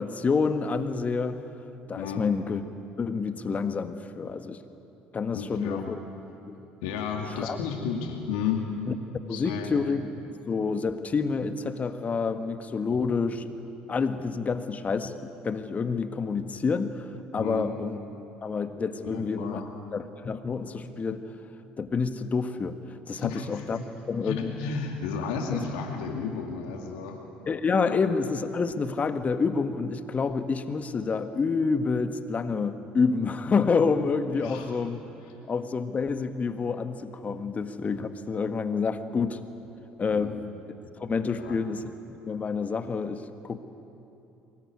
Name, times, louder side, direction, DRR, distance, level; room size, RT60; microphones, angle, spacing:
voice 1, 0.0-1.5 1.9-2.6 3.0-4.6 5.1-6.0 6.5-6.6 7.2-7.6 8.9-9.0 9.3-13.5 13.9-18.0 18.4-19.6 19.9-21.2 21.8-22.8 23.1-24.5 27.5-35.0 35.5-39.4 40.0-40.5 41.0-43.6, left 5 dB, 35° left, 9 dB, 1.6 m, -28 dB
voice 2, 5.3-5.9 6.8-8.6 9.3-9.7 12.9-13.0 17.3-17.6 19.0-19.7 23.1-23.6 24.2-27.2 27.8-28.0 34.4-34.7 40.1-40.3 41.3-41.6, left 6 dB, 75° left, 2 dB, 2.5 m, -33 dB
23.5 x 21.5 x 9.7 m, 2.8 s
hypercardioid pair, 60°, 4 cm